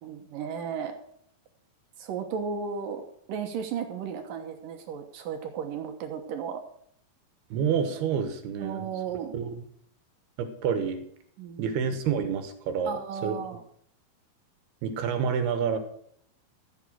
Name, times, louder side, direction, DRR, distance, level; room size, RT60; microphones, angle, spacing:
voice 1, 0.0-0.9 2.0-3.0 3.3-6.6 8.6-9.3 11.4-11.8 12.9-13.6, right 7 dB, 70° right, 6 dB, 2.6 m, -34 dB
voice 2, 7.5-8.9 9.3-9.6 10.4-11.0 11.6-13.0 13.2-13.3 14.8-15.8, right 7 dB, 85° right, 8 dB, 3.3 m, -28 dB
15.0 x 7.4 x 6.3 m, 0.67 s
omnidirectional pair, 4.5 m